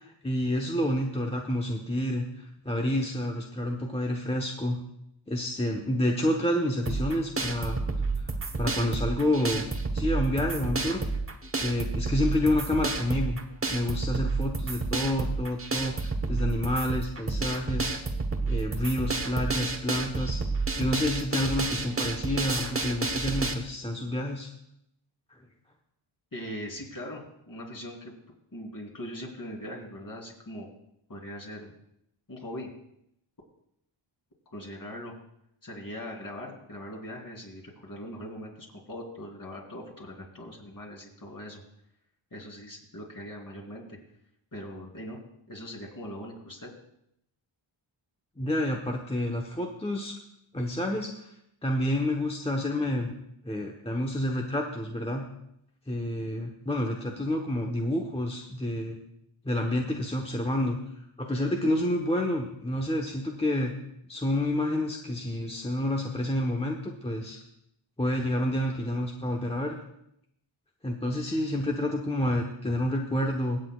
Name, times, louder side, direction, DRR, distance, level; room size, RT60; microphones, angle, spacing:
voice 1, 0.0-2.3 2.6-4.8 5.3-7.8 8.2-9.6 9.9-11.0 11.6-13.4 13.7-18.0 18.5-20.4 20.8-24.5 48.4-50.1 50.5-51.3 51.6-53.1 53.4-55.3 55.9-59.0 59.4-60.8 61.2-63.7 64.1-67.4 68.0-69.8 70.8-73.6, left 1 dB, 10° left, 1 dB, 1.0 m, -29 dB
sound 1, 6.9-23.5, right 3 dB, 25° right, 1.1 m, -30 dB
voice 2, 26.3-28.1 28.5-30.7 31.1-31.7 32.3-32.7 34.5-35.1 35.6-41.6 42.3-44.0 44.5-45.2 45.5-46.7, equal, 40° left, -1 dB, 3.5 m, -41 dB
24.0 x 8.1 x 2.4 m, 0.77 s
wide cardioid pair, 80°, 50 cm